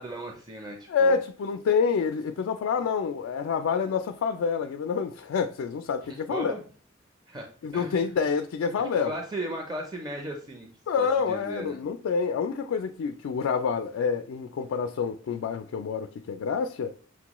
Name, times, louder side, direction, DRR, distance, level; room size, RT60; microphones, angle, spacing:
voice 1, 0.0-1.2 6.0-6.6 7.3-8.0 9.0-10.7 11.0-11.8, right 1 dB, 20° right, 0.5 m, -37 dB
voice 2, 0.9-6.5 7.6-9.1 10.9-16.9, left 6 dB, 85° left, 0.3 m, -27 dB
6.1 x 2.2 x 2.9 m
head